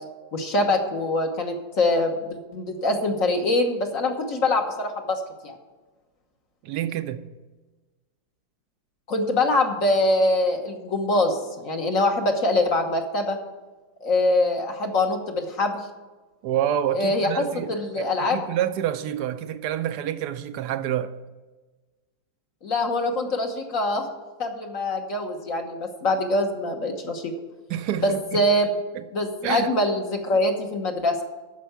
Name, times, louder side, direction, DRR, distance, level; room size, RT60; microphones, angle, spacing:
voice 1, 0.3-5.6 9.1-13.4 14.0-15.8 16.9-18.4 22.6-24.1 24.4-27.3 28.0-28.7 29.1-31.2, left 2 dB, 50° left, 1.4 m, -24 dB
voice 2, 6.6-7.2 16.4-21.1 27.7-28.5 29.4-29.7, right 10 dB, 70° right, 1.1 m, -28 dB
9.2 x 6.7 x 8.0 m
omnidirectional pair, 2.0 m